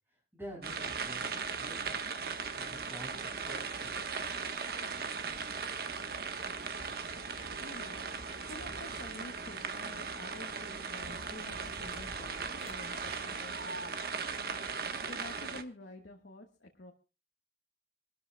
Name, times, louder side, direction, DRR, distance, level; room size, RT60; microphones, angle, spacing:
voice 1, 0.1-2.0 2.5-4.0, right 1 dB, 10° right, -3 dB, 6.7 m, -48 dB
sound 1, 0.6-15.6, right 5 dB, 55° right, 1.1 m, -38 dB
sound 2, 5.2-5.3 7.0-7.9 8.2-9.2 9.5-14.7, right 2 dB, 35° right, 5.1 m, -60 dB
voice 2, 7.6-8.1 8.5-14.1 14.4-16.9, left 2 dB, 70° left, 1 dB, 1.4 m, -50 dB
26.5 x 13.0 x 2.2 m, 0.32 s
head